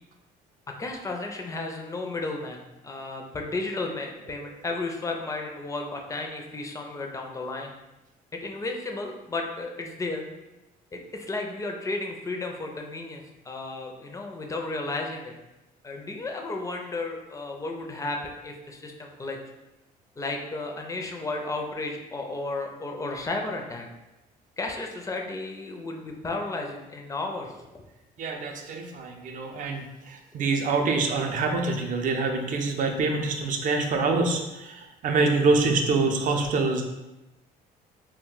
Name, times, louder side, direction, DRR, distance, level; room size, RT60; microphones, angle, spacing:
voice 1, 0.8-7.7 8.4-10.3 10.9-15.3 15.8-19.4 20.2-23.9 24.6-27.8, left 2 dB, 20° left, 2 dB, 0.4 m, -33 dB
voice 2, 28.2-36.8, right 3 dB, 50° right, 4 dB, 0.5 m, -25 dB
2.3 x 2.1 x 3.7 m, 1.0 s
cardioid pair, 110°, 17 cm